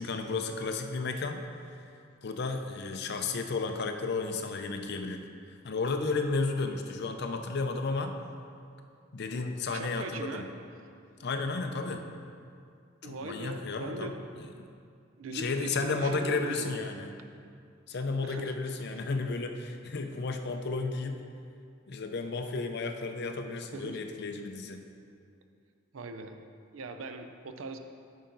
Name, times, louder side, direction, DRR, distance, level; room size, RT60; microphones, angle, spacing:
voice 1, 0.0-1.4 1.7-1.8 2.2-5.2 5.5-8.1 9.1-10.5 11.2-12.0 13.0-14.7 15.3-17.1 17.9-21.2 21.9-24.8, left 3 dB, 55° left, 5 dB, 0.6 m, -33 dB
voice 2, 9.7-10.5 13.0-14.2 15.2-16.8 18.2-18.9 23.7-24.0 25.9-26.4 26.7-27.8, right 2 dB, 80° right, 7 dB, 0.5 m, -40 dB
8.7 x 5.6 x 3.9 m, 2.4 s
head